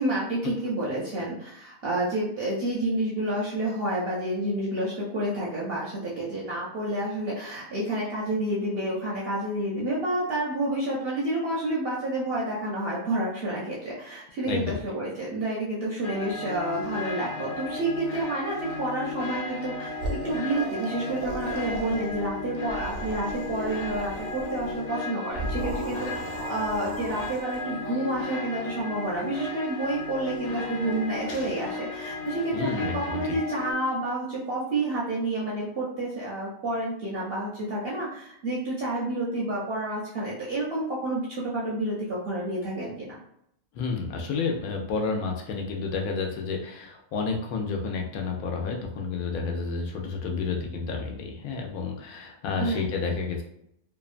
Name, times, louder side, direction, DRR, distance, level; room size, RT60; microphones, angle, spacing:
voice 1, 0.0-43.2 52.6-52.8, right 1 dB, 60° right, -6 dB, 0.7 m, -29 dB
voice 2, 14.4-14.8 32.5-33.4 43.7-53.4, left 4 dB, 90° left, 1 dB, 1.1 m, -30 dB
sound 1, 16.0-33.7, left 3 dB, 65° left, 0.5 m, -35 dB
sound 2, 20.0-22.3 22.6-24.7 25.3-27.6, right 2 dB, 85° right, 1.1 m, -36 dB
2.8 x 2.2 x 2.4 m, 0.74 s
omnidirectional pair, 1.5 m